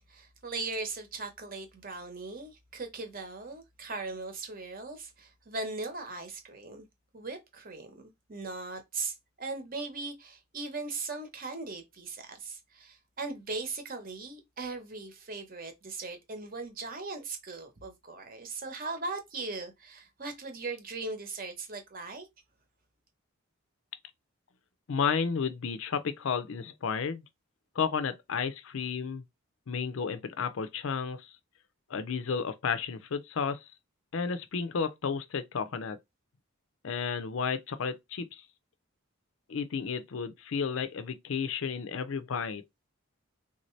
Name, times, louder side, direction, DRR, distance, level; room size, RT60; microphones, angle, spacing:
voice 1, 0.1-6.9 7.1-7.9 8.3-22.3, right 3 dB, 40° right, 0.9 m, -39 dB
voice 2, 24.9-27.2 27.8-29.2 29.7-31.2 31.9-33.6 34.1-36.0 36.8-38.3 39.5-42.6, left 6 dB, 65° left, 0.5 m, -32 dB
3.5 x 2.7 x 3.2 m
head